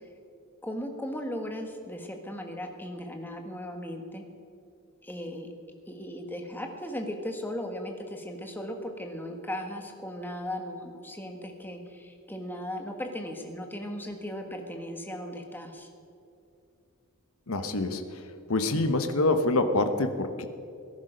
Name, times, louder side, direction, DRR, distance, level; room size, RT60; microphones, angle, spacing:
voice 1, 0.6-4.2 5.0-5.5 5.9-15.9, equal, 10° left, 3 dB, 1.4 m, -37 dB
voice 2, 17.5-18.2 18.5-20.5, left 2 dB, 75° left, 8 dB, 1.0 m, -26 dB
18.0 x 11.0 x 5.1 m, 2.5 s
head